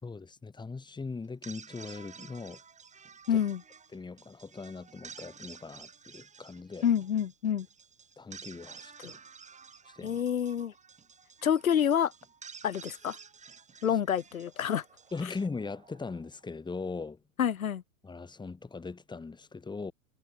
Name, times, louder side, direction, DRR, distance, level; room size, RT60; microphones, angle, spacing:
voice 1, 0.0-2.6 3.3-3.4 3.9-6.9 8.2-9.2 9.9-10.2 15.1-17.2 18.0-19.9, left 4 dB, 10° left, 3.7 m, -40 dB
Thrill Ride, 1.2-16.5, right 6 dB, 15° right, 6.7 m, -52 dB
voice 2, 3.3-3.6 6.8-7.7 9.0-9.1 10.0-10.7 11.4-12.1 12.6-13.2 13.8-14.8 17.4-17.8, left 9 dB, 75° left, 3.7 m, -27 dB
hypercardioid pair, 105°, 42 cm